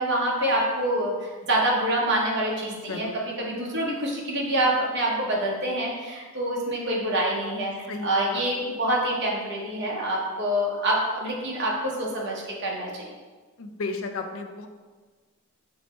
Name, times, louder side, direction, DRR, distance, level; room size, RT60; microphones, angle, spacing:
voice 1, 0.0-13.1, right 1 dB, 50° right, -3 dB, 0.8 m, -26 dB
voice 2, 2.8-3.2 7.9-8.7 13.6-14.7, left 3 dB, 70° left, 6 dB, 0.4 m, -34 dB
5.6 x 2.1 x 4.1 m, 1.4 s
head